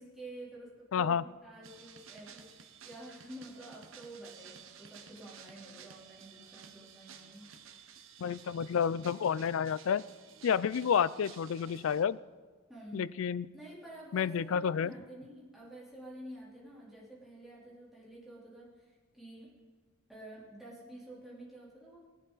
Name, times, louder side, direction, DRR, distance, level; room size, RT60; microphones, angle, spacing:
voice 1, 0.0-7.5 12.7-13.1 13.5-19.5 20.1-22.0, right 1 dB, ahead, -7 dB, 3.4 m, -49 dB
voice 2, 0.9-1.2 8.2-10.0 10.4-12.2 12.9-13.5 14.1-14.9, left 7 dB, 70° left, 19 dB, 0.4 m, -30 dB
sound 1, 1.6-12.0, right 7 dB, 65° right, 1.0 m, -54 dB
17.5 x 11.0 x 4.1 m, 1.4 s
head